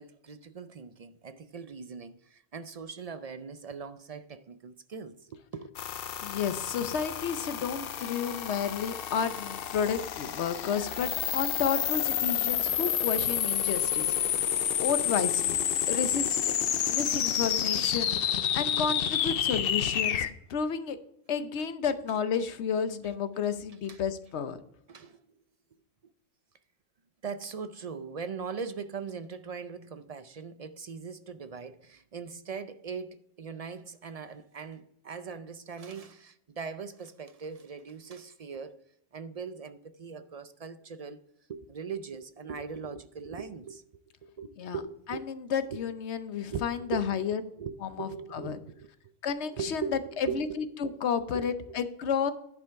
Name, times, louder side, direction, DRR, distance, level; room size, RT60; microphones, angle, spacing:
voice 1, 0.0-5.7 14.4-14.8 16.3-16.4 21.6-21.7 23.9-24.0 24.9-25.3 27.2-38.8 39.1-41.2 41.5-43.8 44.2-45.3 45.7-45.8 46.5-46.6 46.9-47.2 47.6-48.9 49.6-50.6 51.3-51.8, right 6 dB, 50° right, 0.4 m, -40 dB
sound 1, 5.8-20.3, left 9 dB, 65° left, 0.8 m, -29 dB
voice 2, 6.2-15.6 15.9-16.5 16.9-21.0 21.3-24.6 44.6-44.8 45.1-47.4 47.8-48.6 49.2-49.8 50.2-52.3, left 7 dB, 80° left, 1.1 m, -31 dB
10.5 x 5.6 x 4.6 m
omnidirectional pair, 1.1 m